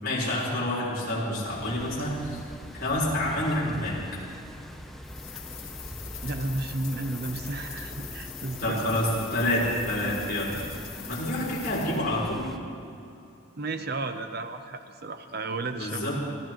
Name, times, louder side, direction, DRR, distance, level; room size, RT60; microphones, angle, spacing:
voice 1, 0.0-2.4 2.7-4.0 8.6-10.5 11.1-12.5 15.7-16.1, left 1 dB, 45° left, -6 dB, 4.6 m, -28 dB
sound 1, 1.5-12.6, equal, ahead, 0.7 m, -42 dB
sound 2, 5.0-12.0, left 9 dB, 75° left, 2.2 m, -42 dB
voice 2, 6.2-8.9 13.6-16.0, right 2 dB, 50° right, 8 dB, 0.7 m, -33 dB
26.0 x 16.0 x 3.1 m, 2.6 s
head